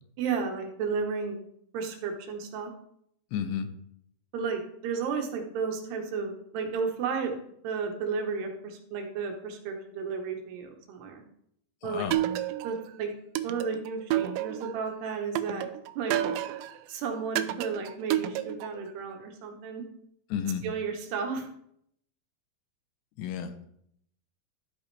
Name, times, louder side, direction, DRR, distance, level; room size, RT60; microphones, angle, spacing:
voice 1, 0.2-1.4 1.7-2.7 4.3-7.3 7.6-11.2 11.8-12.1 12.6-13.1 13.4-15.7 16.0-16.2 16.9-19.9 20.6-21.5, right 5 dB, 75° right, 3 dB, 3.3 m, -33 dB
voice 2, 3.3-3.7 11.8-12.2 20.3-20.6 23.2-23.7, left 8 dB, 85° left, 9 dB, 3.1 m, -32 dB
sound 1, 12.1-12.9 13.4-14.8 15.4-16.8 17.4-18.8, right 13 dB, 90° right, 2.8 m, -30 dB
12.5 x 8.6 x 3.4 m, 0.71 s
omnidirectional pair, 4.9 m